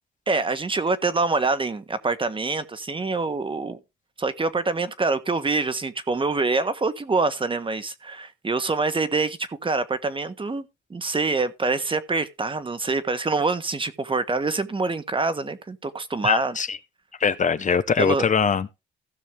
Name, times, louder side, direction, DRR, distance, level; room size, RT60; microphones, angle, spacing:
voice 1, 0.3-3.8 4.2-16.6 18.0-18.3, right 3 dB, 25° right, 1.5 m, -25 dB
voice 2, 16.2-16.8 17.2-18.7, left 6 dB, 40° left, 0.9 m, -22 dB
16.0 x 6.3 x 3.6 m
cardioid pair, 90°, 20 cm